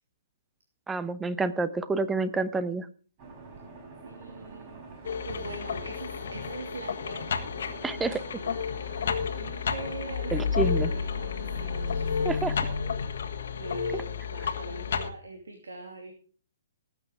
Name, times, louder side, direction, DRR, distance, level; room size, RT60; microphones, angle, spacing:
voice 1, 0.9-2.9 7.8-8.2 10.3-10.9 12.2-12.6 13.9-14.0, right 3 dB, 10° right, 14 dB, 1.0 m, -28 dB
sound 1, 3.2-12.8, right 3 dB, 35° right, 5.7 m, -46 dB
voice 2, 4.0-4.8 5.2-7.6 8.0-12.3 12.6-12.9 13.5-16.1, right 3 dB, 75° right, 4 dB, 2.7 m, -43 dB
sound 2, 5.0-15.1, left 6 dB, 60° left, 1.7 m, -31 dB
19.0 x 8.8 x 5.0 m, 0.41 s
figure-of-eight pair, 125°, 0 cm